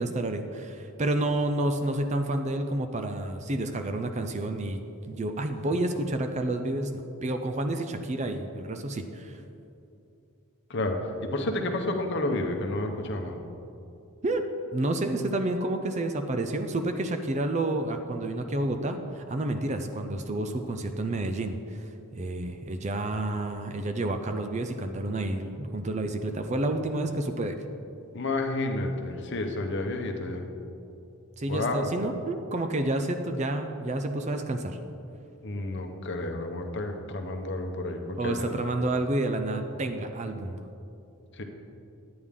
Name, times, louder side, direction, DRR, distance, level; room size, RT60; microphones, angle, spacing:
voice 1, 0.0-9.4 14.2-27.6 31.4-34.8 38.2-40.6, right 2 dB, 30° right, 7 dB, 0.5 m, -30 dB
voice 2, 10.7-13.4 28.1-30.5 31.5-31.9 35.4-38.5 41.4-41.5, left 2 dB, 55° left, 4 dB, 0.8 m, -30 dB
10.0 x 9.6 x 3.6 m, 2.7 s
head